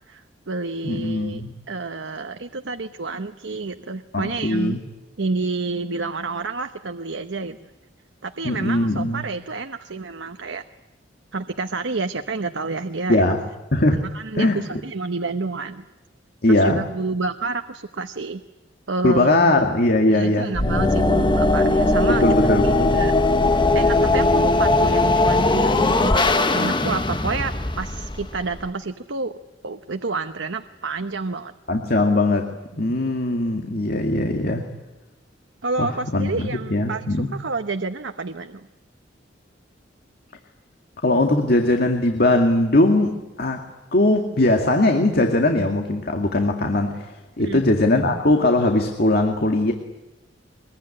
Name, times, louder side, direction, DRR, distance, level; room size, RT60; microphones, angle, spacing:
voice 1, 0.1-4.8 5.2-7.6 8.2-10.6 11.3-13.3 14.1-15.8 16.5-18.4 18.9-19.6 20.1-22.2 22.6-23.1 23.7-29.3 29.6-31.5 35.6-38.7 47.4-47.6, right 3 dB, 85° right, 7 dB, 1.0 m, -29 dB
voice 2, 0.8-1.5 4.1-4.8 8.4-9.2 13.1-13.4 13.7-14.0 14.3-14.6 16.4-16.8 19.0-20.5 22.1-23.0 31.7-32.5 32.8-34.7 35.8-37.4 41.0-43.6 43.9-49.7, left 2 dB, 55° left, 4 dB, 2.1 m, -20 dB
sound 1, 20.5-28.7, left 2 dB, 25° left, 1.1 m, -19 dB
23.0 x 22.5 x 9.9 m, 1.0 s
head